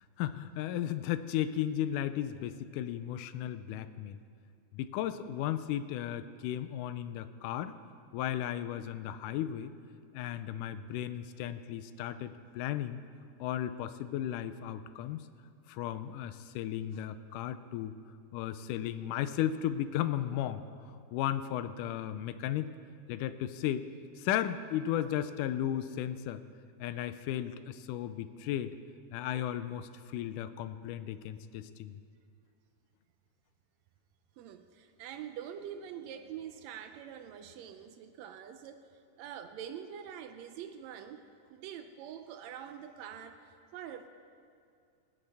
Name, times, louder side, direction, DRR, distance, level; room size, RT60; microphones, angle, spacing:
voice 1, 0.0-4.2 4.7-7.7 8.1-9.7 10.1-13.0 13.4-15.3 15.7-18.0 18.3-20.6 21.1-22.7 23.1-23.9 24.2-26.4 26.8-28.8 29.1-32.0, left 11 dB, 80° left, 11 dB, 2.0 m, -35 dB
voice 2, 34.4-38.9 39.2-41.2 41.5-44.1, right 9 dB, 90° right, 8 dB, 1.5 m, -45 dB
23.5 x 8.6 x 3.4 m, 2.3 s
omnidirectional pair, 3.8 m